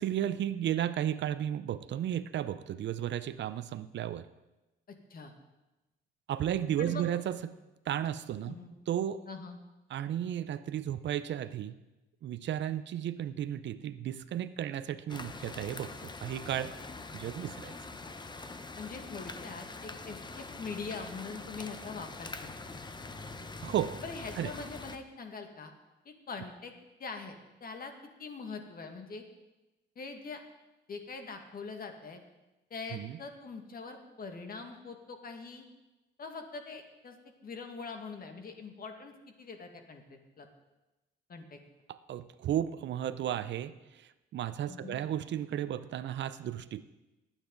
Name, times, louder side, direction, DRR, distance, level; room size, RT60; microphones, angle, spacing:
voice 1, 0.0-4.3 6.3-7.4 7.9-8.6 8.9-9.2 9.9-11.8 12.2-16.7 17.1-17.7 23.6-24.0 24.4-24.5 32.9-33.2 41.9-46.8, right 10 dB, 65° right, 14 dB, 0.6 m, -34 dB
voice 2, 4.9-5.3 6.8-7.0 8.5-8.7 9.3-9.6 18.8-22.5 24.0-25.7 26.1-26.7 27.0-27.9 28.2-29.2 30.0-30.4 30.9-32.2 32.7-35.7 36.2-37.2 37.4-40.5 41.3-41.6 44.7-45.0, left 4 dB, 50° left, 5 dB, 1.9 m, -43 dB
sound 1, 15.1-25.0, left 3 dB, 20° left, 0.9 m, -44 dB
19.0 x 9.2 x 4.0 m, 1.0 s
cardioid pair, 90°, 20 cm